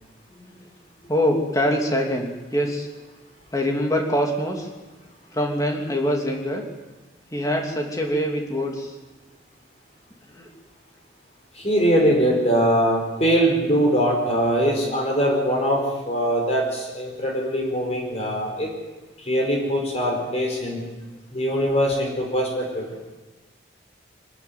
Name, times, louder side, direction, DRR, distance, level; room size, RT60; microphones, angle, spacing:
voice 1, 1.1-2.9 3.5-4.7 5.3-6.6 7.3-8.9 10.3-10.5 11.9-12.1 22.9-23.0, equal, 20° left, 1 dB, 2.9 m, -24 dB
voice 2, 11.5-18.7 19.2-20.8 21.3-22.8, equal, 35° left, 0 dB, 4.9 m, -22 dB
24.0 x 13.0 x 9.5 m, 1.2 s
head